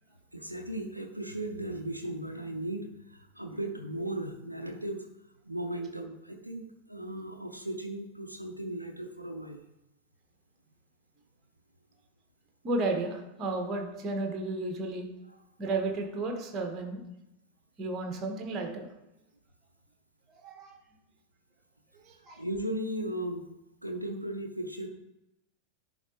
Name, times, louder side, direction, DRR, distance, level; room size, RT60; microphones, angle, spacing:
voice 1, 0.3-5.1 5.5-9.6 22.4-23.5 23.8-24.9, right 1 dB, 90° right, 4 dB, 0.6 m, -36 dB
voice 2, 12.6-15.1 15.6-17.0 17.8-18.9 20.3-20.8 22.0-22.4, right 2 dB, 30° right, 3 dB, 1.3 m, -33 dB
10.5 x 4.0 x 3.0 m, 0.91 s
figure-of-eight pair, 90°, 0 cm